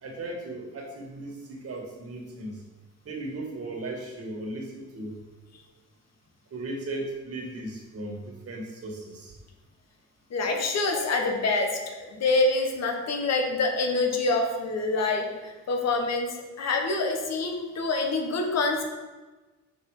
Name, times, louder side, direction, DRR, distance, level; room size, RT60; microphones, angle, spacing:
voice 1, 0.0-2.6 3.1-5.2 6.5-9.4, right 2 dB, 50° right, 0 dB, 2.0 m, -36 dB
voice 2, 10.3-16.3 16.6-18.8, left 3 dB, 60° left, 3 dB, 1.5 m, -26 dB
6.9 x 4.9 x 4.9 m, 1.2 s
cardioid pair, 90°, 30 cm